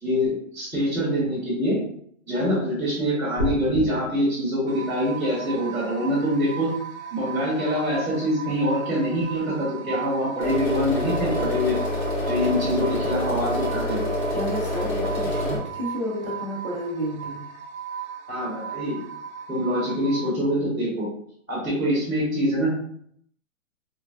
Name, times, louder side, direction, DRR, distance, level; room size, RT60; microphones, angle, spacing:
voice 1, 0.0-1.8 2.3-6.7 7.1-11.8 12.3-14.0 18.3-19.0 19.5-21.1 21.5-22.7, equal, 5° left, -19 dB, 0.8 m, -25 dB
sound 1, 3.4-3.8, left 2 dB, 35° left, 0.6 m, -27 dB
sound 2, 4.7-20.3, right 7 dB, 80° right, 0.6 m, -37 dB
sound 3, 10.4-15.6, left 1 dB, 75° left, 1.4 m, -26 dB
voice 2, 14.3-17.4, equal, 25° right, -7 dB, 0.4 m, -31 dB
3.1 x 2.3 x 2.2 m, 0.65 s
hypercardioid pair, 170°, 41 cm